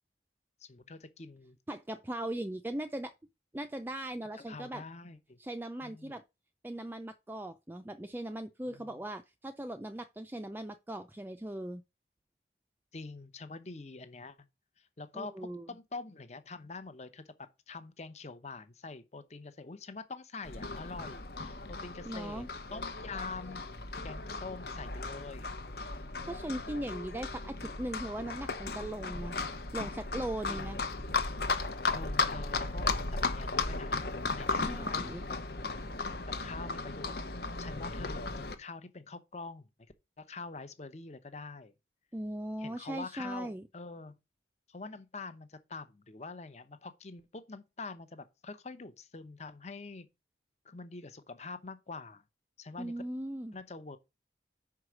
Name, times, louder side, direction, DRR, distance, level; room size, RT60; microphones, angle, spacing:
voice 1, 0.6-1.6 4.3-5.4 5.8-6.2 8.7-8.9 12.9-14.5 14.8-22.5 22.7-23.7 24.0-25.5 26.0-26.3 30.5-30.8 31.9-34.0 34.4-35.4 36.4-37.2 37.6-39.7 40.2-41.7 42.6-44.1 44.7-50.1 50.6-52.2 52.6-52.9 53.5-54.0, left 3 dB, 40° left, 0.8 m, -45 dB
voice 2, 1.7-3.1 3.5-4.8 5.4-6.2 6.6-11.8 15.1-15.7 22.1-22.5 26.2-29.4 29.7-30.8 34.5-35.3 42.1-43.6 52.8-53.6, right 1 dB, 10° right, 0.4 m, -39 dB
Livestock farm animals working animals, 20.4-38.6, left 3 dB, 60° left, 0.9 m, -36 dB
5.7 x 4.8 x 6.2 m
head